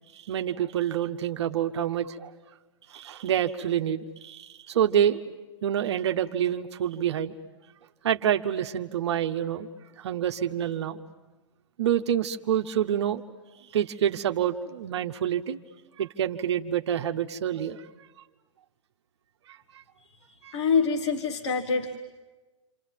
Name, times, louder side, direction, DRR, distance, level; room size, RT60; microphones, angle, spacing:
voice 1, 0.1-2.3 2.9-5.2 5.6-7.3 8.0-9.7 10.0-11.0 11.8-13.2 13.7-15.6 16.0-17.9 19.5-19.6 20.4-20.5, right 10 dB, 65° right, 6 dB, 0.9 m, -27 dB
voice 2, 20.3-22.0, left 5 dB, 65° left, 5 dB, 1.8 m, -26 dB
27.5 x 26.5 x 7.5 m, 1.2 s
figure-of-eight pair, 110°, 16 cm